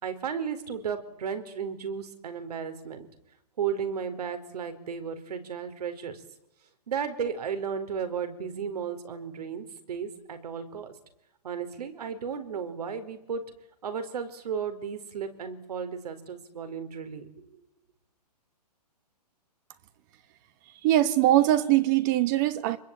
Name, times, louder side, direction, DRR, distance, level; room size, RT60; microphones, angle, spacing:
voice 1, 0.0-3.1 3.6-6.2 6.9-10.9 11.4-13.4 13.8-17.3, right 7 dB, 70° right, 4.6 m, -34 dB
voice 2, 20.8-22.8, right 14 dB, 30° right, 1.2 m, -22 dB
25.5 x 21.5 x 9.1 m
hypercardioid pair, 160°, 21 cm